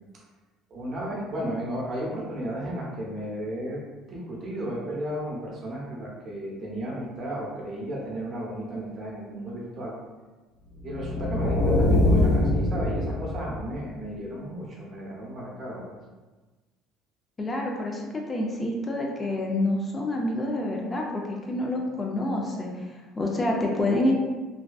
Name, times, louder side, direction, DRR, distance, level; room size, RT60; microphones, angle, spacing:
voice 1, 0.7-3.8 4.1-10.0 10.8-15.8, right 1 dB, 45° right, -3 dB, 0.8 m, -34 dB
sound 1, 10.8-13.8, left 1 dB, 60° left, 1.1 m, -23 dB
voice 2, 17.4-22.9 23.2-24.1, left 1 dB, 25° left, 0 dB, 0.4 m, -27 dB
2.5 x 2.2 x 2.3 m, 1.3 s
supercardioid pair, 90°, 0 cm